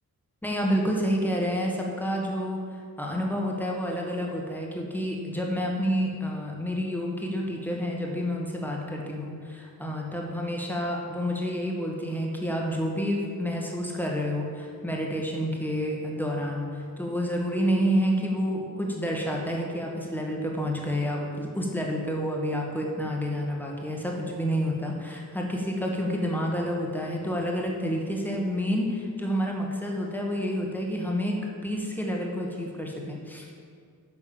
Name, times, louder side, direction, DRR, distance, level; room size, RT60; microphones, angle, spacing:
voice 1, 0.4-31.4 31.6-33.6, equal, 5° left, -1 dB, 1.6 m, -29 dB
10.5 x 5.9 x 7.1 m, 2.1 s
wide cardioid pair, 150°, 38 cm